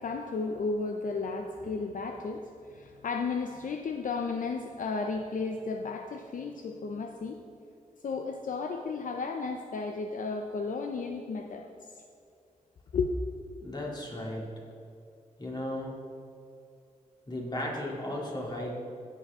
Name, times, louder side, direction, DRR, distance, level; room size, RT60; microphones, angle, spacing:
voice 1, 0.0-7.4 8.0-11.9 12.9-13.1, left 4 dB, 70° left, 4 dB, 0.6 m, -33 dB
voice 2, 13.6-14.5 15.4-15.9 17.3-18.7, left 1 dB, 30° left, -2 dB, 2.5 m, -35 dB
16.5 x 6.6 x 3.7 m, 2.6 s
wide cardioid pair, 105°, 14 cm